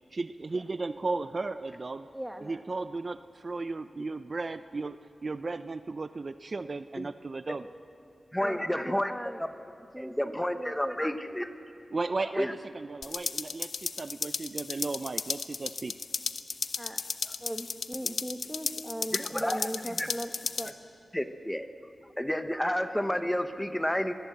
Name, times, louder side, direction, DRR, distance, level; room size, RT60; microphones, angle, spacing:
voice 1, 0.1-2.1 2.4-7.7 11.9-16.0, right 3 dB, 50° right, 11 dB, 0.6 m, -35 dB
voice 2, 2.1-2.6 8.4-9.4 9.9-11.1 16.8-17.0 17.4-20.7, equal, 10° right, 6 dB, 1.8 m, -39 dB
voice 3, 8.3-9.1 9.4-9.5 10.0-11.5 12.4-12.5 16.8-17.0 19.1-19.7 20.0-20.1 21.1-21.7 22.2-24.1, equal, 10° left, 8 dB, 1.0 m, -30 dB
sound 1, 13.0-20.7, left 5 dB, 80° left, 0.8 m, -35 dB
25.0 x 20.0 x 8.0 m, 2.5 s
wide cardioid pair, 75°, 0 cm